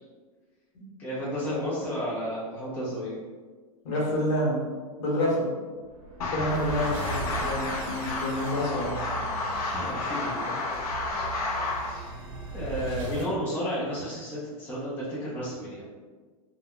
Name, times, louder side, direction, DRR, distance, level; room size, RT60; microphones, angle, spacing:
voice 1, 1.0-3.2 9.7-10.6 11.1-11.3 11.8-12.2 12.5-15.9, equal, 10° left, -9 dB, 0.4 m, -33 dB
voice 2, 3.8-4.7 5.0-5.5 6.3-9.0, left 1 dB, 50° left, -4 dB, 1.0 m, -28 dB
sound 1, 5.9-13.3, right 3 dB, 60° right, 0.7 m, -38 dB
sound 2, 6.2-12.0, left 3 dB, 70° left, 0.6 m, -31 dB
2.2 x 2.1 x 3.6 m, 1.4 s
supercardioid pair, 150°, 20 cm